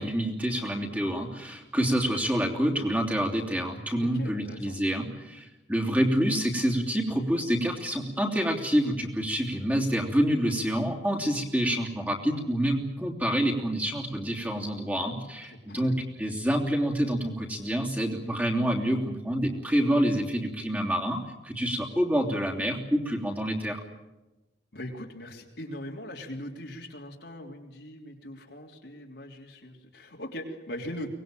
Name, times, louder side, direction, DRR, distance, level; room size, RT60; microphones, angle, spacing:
voice 1, 0.0-23.8, equal, 10° right, 1 dB, 3.1 m, -27 dB
voice 2, 4.0-4.7 15.7-15.9 24.7-31.1, left 1 dB, 65° left, 0 dB, 3.2 m, -40 dB
24.0 x 20.0 x 9.1 m, 1.0 s
head